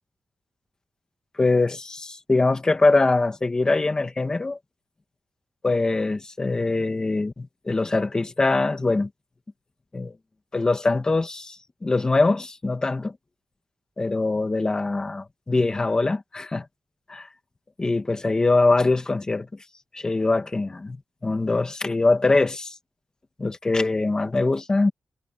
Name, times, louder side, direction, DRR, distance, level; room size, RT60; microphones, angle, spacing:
voice 1, 1.4-4.6 5.6-9.1 9.9-10.2 10.5-13.1 14.0-16.7 17.1-17.3 17.8-19.5 19.9-22.7 23.4-24.9, left 3 dB, 25° left, 2.1 m, -23 dB
wide cardioid pair, 155°, 3 cm